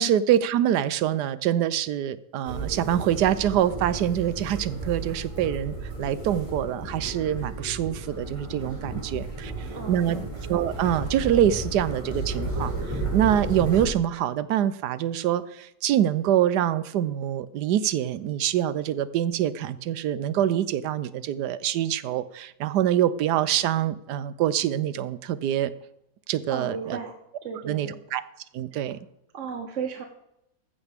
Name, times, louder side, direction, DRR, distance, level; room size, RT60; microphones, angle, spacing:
voice 1, 0.0-9.5 9.9-10.2 10.5-12.7 13.1-25.7 26.3-26.8 27.7-28.2 28.5-29.0, right 11 dB, 90° right, 15 dB, 1.3 m, -25 dB
sound 1, 2.5-13.9, right 2 dB, 15° right, 5.5 m, -33 dB
voice 2, 9.7-10.3 26.5-27.1 27.4-28.0 28.7-28.8 29.3-30.0, right 6 dB, 55° right, 5 dB, 1.2 m, -34 dB
14.5 x 10.5 x 3.6 m, 0.81 s
omnidirectional pair, 1.7 m